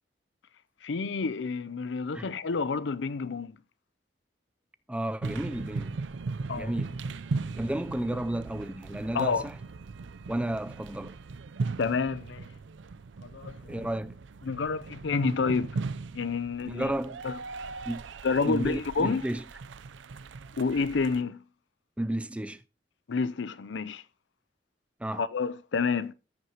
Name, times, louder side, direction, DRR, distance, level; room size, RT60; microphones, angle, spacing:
voice 1, 0.8-3.6 6.5-6.7 9.1-9.4 11.8-12.5 13.3-13.9 14.4-15.7 16.1-16.9 17.2-17.4 18.2-19.2 20.6-21.4 23.1-24.0 25.1-26.1, left 4 dB, 75° left, 0.5 m, -29 dB
voice 2, 4.9-6.0 6.6-7.0 7.6-9.6 10.3-11.2 13.7-14.2 16.7-17.2 17.9-18.0 18.4-19.4 22.0-22.6 25.0-25.2, right 1 dB, 5° right, 0.4 m, -32 dB
sound 1, 5.2-21.2, right 3 dB, 85° right, 0.5 m, -38 dB
14.0 x 6.2 x 2.8 m
head